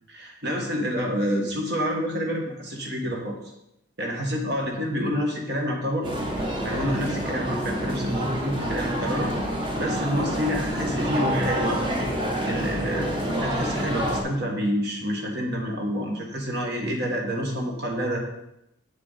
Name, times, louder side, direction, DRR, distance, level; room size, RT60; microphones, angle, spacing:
voice 1, 0.1-3.4 4.0-6.1 6.6-9.3 9.7-12.1 12.4-13.1 13.4-18.2, equal, 50° right, 1 dB, 1.7 m, -28 dB
sound 1, 6.0-14.2, equal, 25° right, 1.2 m, -28 dB
7.8 x 7.1 x 4.1 m, 0.82 s
head